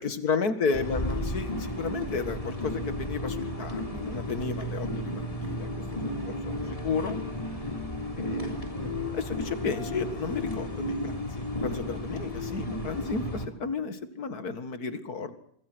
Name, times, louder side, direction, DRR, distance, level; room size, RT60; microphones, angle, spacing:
voice 1, 0.0-7.2 8.1-8.6 9.1-15.3, left 4 dB, 50° left, 11 dB, 2.3 m, -33 dB
sound 1, 0.7-13.5, left 1 dB, 15° left, 3.6 m, -33 dB
25.0 x 24.0 x 6.3 m, 0.70 s
omnidirectional pair, 2.1 m